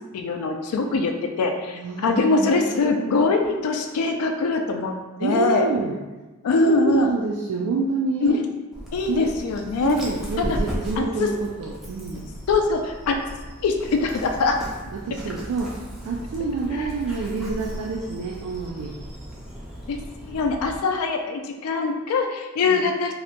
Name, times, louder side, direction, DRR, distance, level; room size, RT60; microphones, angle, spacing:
voice 1, 0.1-1.1 1.4-4.9 5.2-5.7 6.4-7.1 8.2-8.4 8.9-10.0 10.4-10.6 11.2-11.3 12.5-13.2 13.6-14.6 19.9-20.0 20.3-23.1, left 3 dB, 75° left, 5 dB, 0.3 m, -22 dB
voice 2, 1.7-3.1 5.2-6.0 6.6-8.4 9.1-9.3 9.8-12.3 14.9-15.7 16.0-18.9 22.6-22.8, right 4 dB, 85° right, 0 dB, 0.3 m, -28 dB
Dog, 8.7-20.8, equal, ahead, 0.3 m, -36 dB
2.7 x 2.1 x 2.7 m, 1.2 s
head